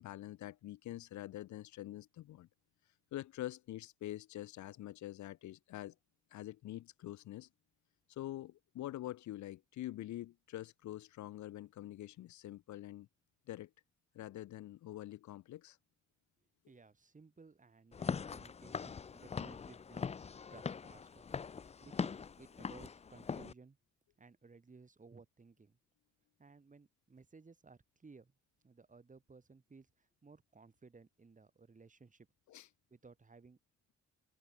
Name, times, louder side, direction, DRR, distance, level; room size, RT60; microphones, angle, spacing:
voice 1, 0.0-2.5 3.1-5.9 6.3-7.5 8.1-13.1 13.5-13.7 14.1-15.8 32.5-32.7, left 14 dB, 75° left, 0.5 m, -45 dB
voice 2, 16.7-21.3 21.8-23.8 24.2-25.8 26.4-28.3 28.6-32.3 32.9-33.6, right 4 dB, 25° right, 2.9 m, -59 dB
Walk footsteps / Siren, 17.9-23.5, left 6 dB, 25° left, 0.4 m, -42 dB
wide cardioid pair, 135°, 29 cm